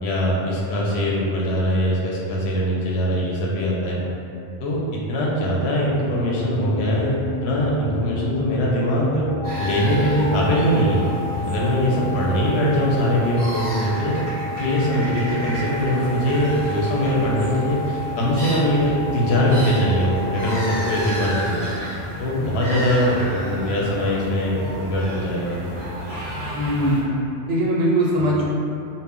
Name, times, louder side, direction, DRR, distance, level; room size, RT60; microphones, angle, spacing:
voice 1, 0.0-4.0 4.6-7.1 7.4-9.2 9.6-11.0 11.4-14.2 14.6-21.6 22.2-25.6, equal, 70° left, -4 dB, 0.8 m, -22 dB
sound 1, 6.1-11.5, left 5 dB, 5° right, 0.7 m, -32 dB
sound 2, 9.3-21.5, left 2 dB, 25° left, 0.7 m, -33 dB
sound 3, 9.4-27.0, right 1 dB, 30° right, 0.3 m, -32 dB
voice 2, 22.4-22.8 26.5-27.0 27.5-28.5, right 1 dB, 65° right, -5 dB, 0.7 m, -21 dB
2.1 x 2.1 x 3.6 m, 2.7 s
omnidirectional pair, 1.2 m